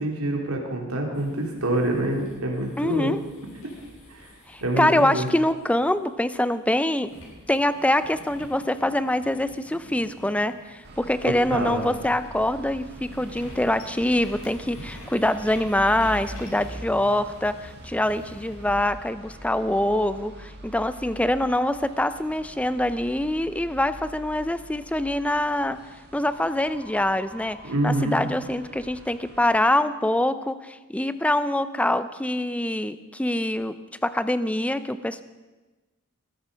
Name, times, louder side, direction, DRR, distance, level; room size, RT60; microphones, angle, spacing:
voice 1, 0.0-3.1 4.1-4.3 4.6-5.3 11.2-11.8 27.6-28.3, right 1 dB, 80° right, 1 dB, 3.3 m, -26 dB
sound 1, 1.1-6.5 7.0-18.6, equal, 70° left, 6.4 m, -48 dB
voice 2, 2.8-3.2 4.5-7.1 7.5-25.8 26.1-27.6 27.8-35.2, left 1 dB, 5° left, 13 dB, 0.5 m, -24 dB
sound 2, 10.8-29.6, right 1 dB, 50° right, 1.8 m, -44 dB
sound 3, 26.3-30.1, right 1 dB, 30° left, 7.5 m, -49 dB
19.0 x 14.0 x 5.1 m, 1.2 s
head